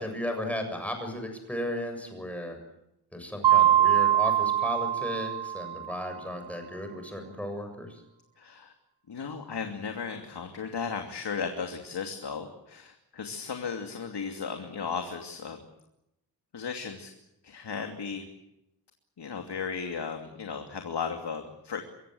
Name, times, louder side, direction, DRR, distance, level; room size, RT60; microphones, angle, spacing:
voice 1, 0.0-2.6 3.1-8.0, left 1 dB, 5° left, 5 dB, 7.4 m, -35 dB
Mallet percussion, 3.4-6.1, right 11 dB, 85° right, 1.1 m, -23 dB
voice 2, 8.4-8.7 9.1-15.6 16.5-17.1 17.4-18.2 19.2-21.8, left 6 dB, 80° left, 4 dB, 2.8 m, -35 dB
25.0 x 23.0 x 7.9 m, 0.85 s
wide cardioid pair, 150°, 40 cm